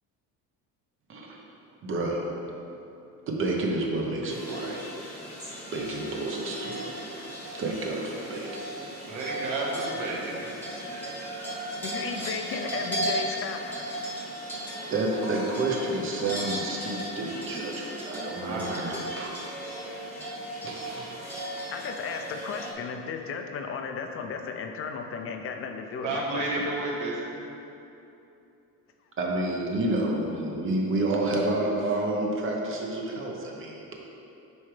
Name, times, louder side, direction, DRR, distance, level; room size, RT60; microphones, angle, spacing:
voice 1, 1.1-1.4 1.8-2.3 3.3-4.8 5.7-7.1 7.6-8.7 14.9-19.3 20.6-21.2 21.6-21.7 29.2-33.9, right 2 dB, 35° right, -1 dB, 0.9 m, -30 dB
sound 1, 4.3-22.7, right 1 dB, 5° left, 1.1 m, -36 dB
voice 2, 9.0-11.8 18.4-19.0 26.0-27.4, right 2 dB, 65° right, -3 dB, 1.5 m, -33 dB
voice 3, 11.8-13.8 21.7-26.5, left 5 dB, 40° left, 5 dB, 0.5 m, -34 dB
9.7 x 4.7 x 3.3 m, 2.9 s
cardioid pair, 170°, 35 cm